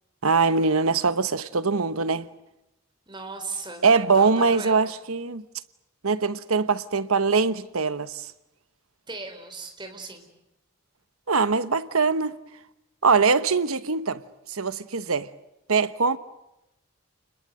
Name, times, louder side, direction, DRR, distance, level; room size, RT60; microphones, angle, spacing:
voice 1, 0.2-2.3 3.8-5.4 6.0-8.3 11.3-12.3 13.0-14.2 14.5-15.3 15.7-16.2, right 4 dB, 85° right, 1.1 m, -22 dB
voice 2, 3.1-3.9 4.1-4.9 9.1-10.3, right 3 dB, 20° right, 4.4 m, -37 dB
29.5 x 21.5 x 7.8 m
head